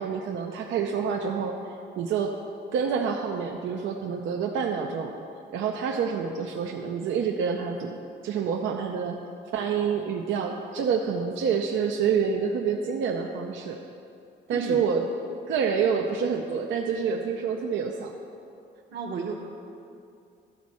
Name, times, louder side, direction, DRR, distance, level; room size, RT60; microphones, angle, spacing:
voice 1, 0.0-1.6 2.0-2.3 2.7-5.1 5.5-8.0 8.2-9.2 9.5-13.8 14.5-15.0 15.5-18.1, right 6 dB, 75° right, 2 dB, 0.6 m, -27 dB
voice 2, 14.5-14.8 18.9-19.3, right 4 dB, 60° right, -5 dB, 1.1 m, -32 dB
12.5 x 4.2 x 6.1 m, 2.5 s
cardioid pair, 90°, 20 cm